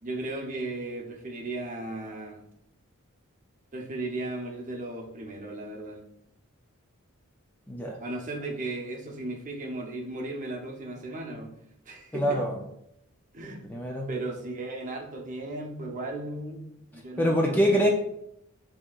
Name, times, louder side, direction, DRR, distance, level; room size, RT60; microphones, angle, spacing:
voice 1, 0.0-2.4 3.7-6.0 8.0-11.5 11.9-12.4 13.3-13.6 14.1-17.9, right 2 dB, 35° right, 2 dB, 0.7 m, -36 dB
voice 2, 7.7-8.0 12.1-12.6 13.7-14.1 17.2-17.9, equal, 10° left, 0 dB, 0.4 m, -24 dB
7.3 x 2.8 x 2.3 m, 0.78 s
head